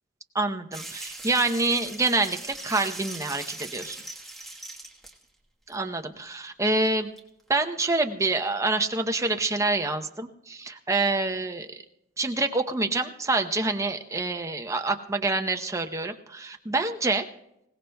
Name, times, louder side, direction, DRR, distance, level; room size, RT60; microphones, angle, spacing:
voice 1, 0.3-4.0 5.7-7.1 7.5-11.8 12.2-17.3, right 2 dB, 15° right, 5 dB, 0.7 m, -27 dB
sound 1, 0.7-5.2 5.7-5.8 6.9-7.0 7.2-7.3, right 2 dB, ahead, 1.3 m, -40 dB
26.0 x 17.0 x 2.3 m, 0.84 s
head